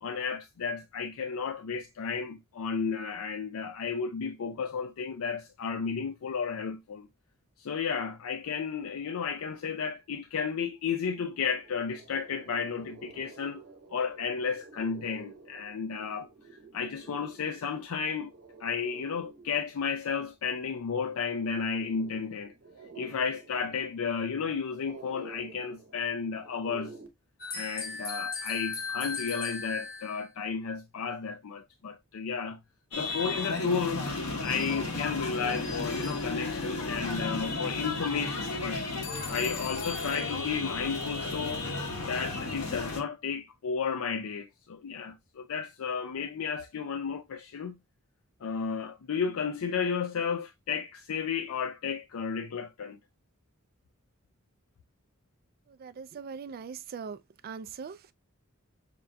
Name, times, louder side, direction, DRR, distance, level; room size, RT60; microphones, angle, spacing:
voice 1, 0.0-7.1 7.6-13.6 13.9-16.3 16.7-18.3 18.6-22.5 23.0-26.9 27.5-32.6 32.9-34.1 34.4-38.8 39.3-41.6 42.1-47.8 48.4-53.0, left 6 dB, 75° left, 0.4 m, -33 dB
sound 1, 10.9-27.1, right 4 dB, 65° right, 0.9 m, -51 dB
sound 2, 27.4-30.2, left 4 dB, 45° left, 1.1 m, -36 dB
sound 3, 32.9-43.0, left 3 dB, 90° left, 1.2 m, -34 dB
voice 2, 55.8-57.2 57.4-58.1, right 6 dB, 45° right, 0.3 m, -40 dB
5.8 x 2.6 x 2.2 m
head